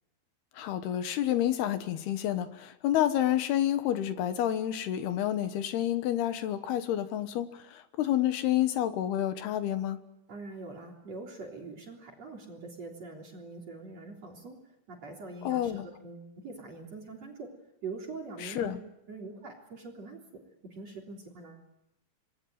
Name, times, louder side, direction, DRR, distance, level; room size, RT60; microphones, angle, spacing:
voice 1, 0.5-10.0 15.4-15.9 18.4-18.8, left 12 dB, 70° left, 10 dB, 2.8 m, -29 dB
voice 2, 10.3-14.6 14.9-17.5 17.8-20.2 20.7-21.7, right 3 dB, 35° right, 1 dB, 4.1 m, -43 dB
26.5 x 21.5 x 9.4 m, 0.88 s
omnidirectional pair, 5.7 m